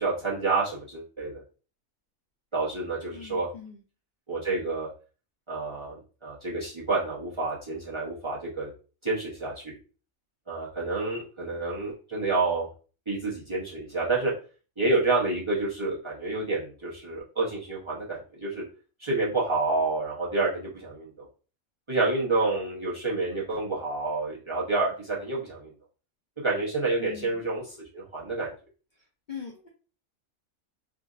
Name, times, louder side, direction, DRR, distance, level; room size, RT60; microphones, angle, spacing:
voice 1, 0.0-1.4 2.5-3.5 4.3-4.9 5.5-8.7 9.0-9.7 10.5-12.7 13.1-14.3 14.8-18.6 19.0-21.3 21.9-25.7 26.4-28.5, right 3 dB, 30° right, -7 dB, 0.6 m, -29 dB
voice 2, 3.1-3.8 27.0-27.4 29.3-29.7, left 7 dB, 65° left, 1 dB, 0.4 m, -41 dB
3.6 x 2.5 x 2.4 m, 0.37 s
omnidirectional pair, 1.4 m